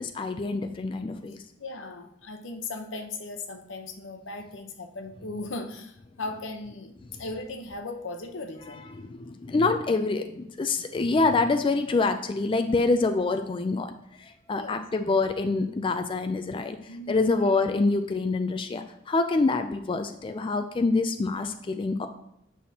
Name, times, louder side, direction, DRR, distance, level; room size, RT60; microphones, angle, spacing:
voice 1, 0.0-1.4 8.9-13.9 14.2-16.8 17.1-22.1, left 3 dB, 25° left, 7 dB, 0.4 m, -26 dB
voice 2, 1.6-6.9 7.2-8.9 14.5-14.8 16.9-17.4, left 2 dB, 85° left, 5 dB, 0.8 m, -37 dB
8.4 x 5.9 x 2.8 m, 0.77 s
head